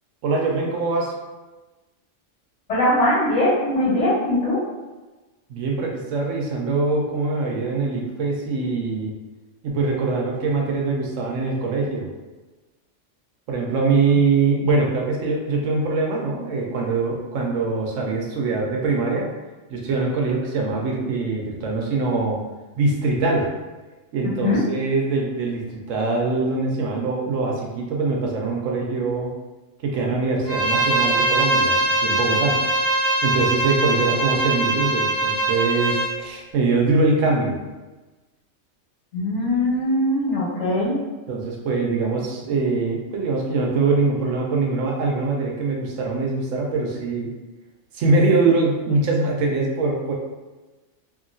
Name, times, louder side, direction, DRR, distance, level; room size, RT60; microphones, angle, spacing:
voice 1, 0.2-1.1 5.5-9.1 9.6-12.1 13.5-19.3 19.7-22.4 22.8-23.5 24.1-29.3 29.8-32.6 33.2-37.6 41.3-47.3 47.9-50.1, right 3 dB, 85° right, -1 dB, 1.0 m, -23 dB
voice 2, 2.7-4.6 24.4-24.6 39.1-41.0, left 1 dB, 70° left, -8 dB, 1.6 m, -21 dB
Bowed string instrument, 30.5-36.1, right 2 dB, 25° right, 0.7 m, -22 dB
2.8 x 2.7 x 2.6 m, 1.2 s
omnidirectional pair, 1.3 m